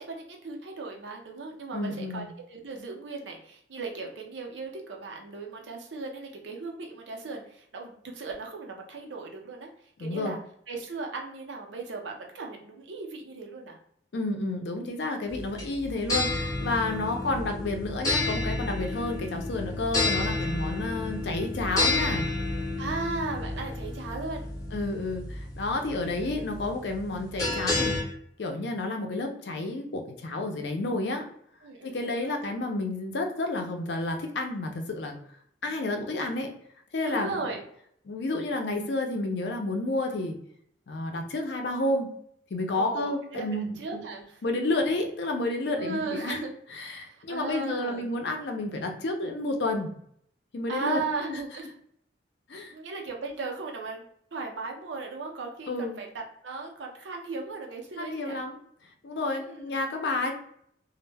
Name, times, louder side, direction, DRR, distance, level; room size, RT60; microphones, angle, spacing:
voice 1, 0.0-9.7 10.0-10.4 10.7-13.8 22.8-24.5 31.6-32.4 35.7-36.1 37.0-37.6 42.7-43.5 43.8-44.4 45.8-46.5 47.1-48.1 50.7-51.7 52.7-58.4 59.4-59.6, right 3 dB, 85° right, 2 dB, 0.6 m, -37 dB
voice 2, 1.7-2.3 10.0-10.3 14.1-22.3 24.7-28.0 28.4-31.2 31.8-35.1 35.6-36.5 36.9-37.3 38.1-40.4 40.9-42.1 42.5-44.0 44.4-46.4 46.7-49.9 50.5-51.0 51.3-51.4 52.5-52.7 55.7-56.0 58.0-58.6 59.0-60.3, left 2 dB, 65° left, 4 dB, 0.5 m, -30 dB
sound 1, 15.3-28.0, left 2 dB, 20° left, 0.6 m, -31 dB
2.1 x 2.1 x 3.2 m, 0.67 s
head